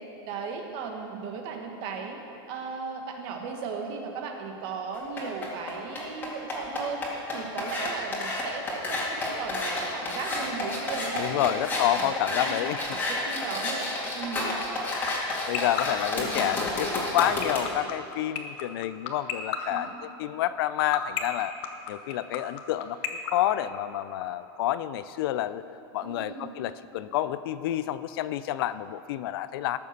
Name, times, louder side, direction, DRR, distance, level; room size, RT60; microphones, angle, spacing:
voice 1, 0.3-2.2 2.5-7.0 7.3-11.5 12.0-14.5 19.6-20.0 26.0-26.5, right 5 dB, 45° right, 3 dB, 1.5 m, -36 dB
sound 1, 4.9-17.6, left 2 dB, 15° left, 2.1 m, -30 dB
voice 2, 11.1-12.8 15.5-19.9 20.2-21.5 21.9-25.6 25.9-29.8, left 13 dB, 70° left, 14 dB, 0.4 m, -29 dB
sound 2, 14.8-24.2, left 15 dB, 45° left, 1.0 m, -29 dB
13.5 x 6.8 x 6.6 m, 2.8 s
supercardioid pair, 160°, 13 cm